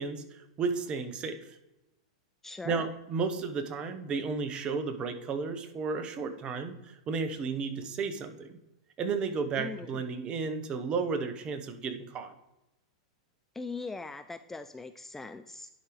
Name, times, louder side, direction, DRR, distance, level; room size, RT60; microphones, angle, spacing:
voice 1, 0.0-1.6 2.6-8.5 9.0-12.3, right 4 dB, 30° right, 8 dB, 0.9 m, -33 dB
voice 2, 2.4-2.9 9.6-10.0 13.5-15.7, left 3 dB, 10° left, 10 dB, 0.3 m, -40 dB
10.5 x 4.8 x 3.1 m, 0.95 s
hypercardioid pair, 110°, 3 cm